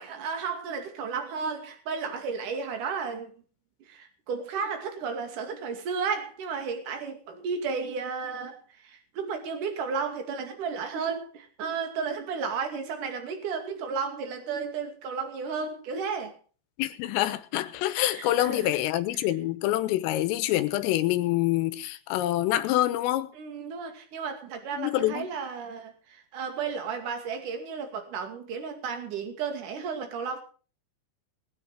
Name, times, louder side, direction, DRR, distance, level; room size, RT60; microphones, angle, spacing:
voice 1, 0.0-3.3 3.9-8.5 8.8-16.4 18.1-18.7 23.3-30.4, right 5 dB, 50° right, 3.3 m, -33 dB
voice 2, 16.8-23.3 24.8-25.3, left 14 dB, 85° left, 3.7 m, -26 dB
20.0 x 9.2 x 4.8 m
omnidirectional pair, 5.8 m